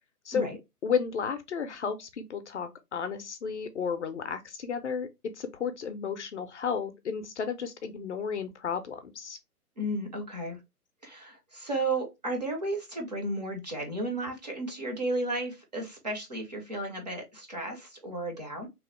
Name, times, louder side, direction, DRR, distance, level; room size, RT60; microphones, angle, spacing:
voice 1, 0.8-5.1 5.3-9.4, left 6 dB, 50° left, 0.5 m, -33 dB
voice 2, 9.8-10.6 11.0-18.7, right 2 dB, 30° right, 0.5 m, -33 dB
2.9 x 2.0 x 3.0 m
hypercardioid pair, 150°, 47 cm